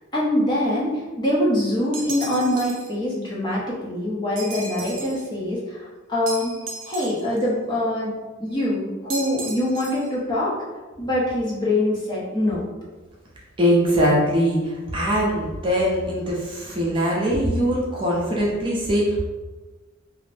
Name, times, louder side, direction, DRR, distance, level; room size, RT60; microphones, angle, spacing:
voice 1, 0.1-6.5 6.8-8.1 8.4-10.5 11.0-12.7, left 1 dB, 20° left, -6 dB, 0.6 m, -24 dB
sound 1, 1.9-2.9 4.4-5.2 6.3-7.4 9.1-10.1, right 3 dB, 85° right, 0.5 m, -35 dB
voice 2, 13.6-19.2, equal, 25° right, -5 dB, 0.5 m, -21 dB
2.5 x 2.0 x 3.2 m, 1.2 s
head